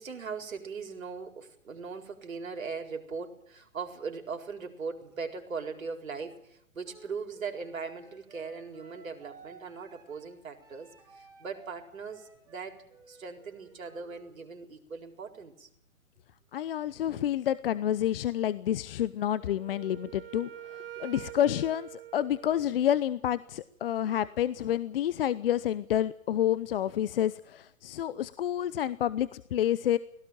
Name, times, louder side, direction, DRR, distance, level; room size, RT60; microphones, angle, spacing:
voice 1, 0.0-15.7 21.0-21.1 22.6-22.7 24.0-24.2, right 5 dB, 75° right, 4 dB, 4.4 m, -40 dB
Wind instrument woodwind instrument, 6.8-14.3, right 4 dB, 10° right, 6.1 m, -56 dB
voice 2, 16.5-30.0, left 11 dB, 45° left, 16 dB, 0.8 m, -29 dB
Wind instrument woodwind instrument 2, 19.4-23.2, right 13 dB, 45° right, 1.0 m, -46 dB
18.5 x 17.5 x 8.9 m, 0.71 s
hypercardioid pair, 145°, 41 cm